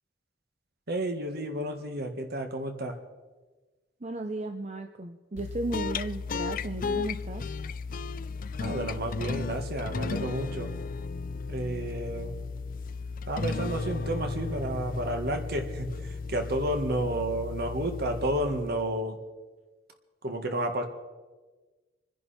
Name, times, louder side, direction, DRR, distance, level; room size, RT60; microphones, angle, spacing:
voice 1, 0.9-3.0 8.6-10.7 11.5-12.3 13.3-19.2 20.2-20.8, right 1 dB, 60° right, 5 dB, 1.9 m, -31 dB
voice 2, 4.0-7.5, right 2 dB, 40° right, 5 dB, 0.8 m, -35 dB
sound 1, 5.4-18.9, left 4 dB, 50° left, 0.5 m, -35 dB
27.0 x 10.5 x 4.4 m, 1.3 s
head